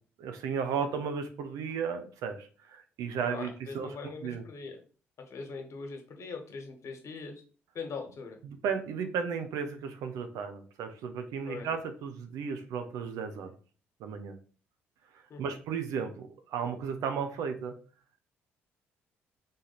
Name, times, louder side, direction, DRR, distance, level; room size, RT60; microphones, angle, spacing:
voice 1, 0.2-3.9 4.2-4.4 8.4-13.5 14.0-14.4 15.4-17.8, right 6 dB, 65° right, 7 dB, 0.7 m, -34 dB
voice 2, 3.3-4.8 5.2-7.4 7.7-8.4 11.4-11.7 15.3-15.6, left 4 dB, 50° left, 4 dB, 1.3 m, -41 dB
3.8 x 3.5 x 4.0 m, 0.39 s
hypercardioid pair, 45°, 6 cm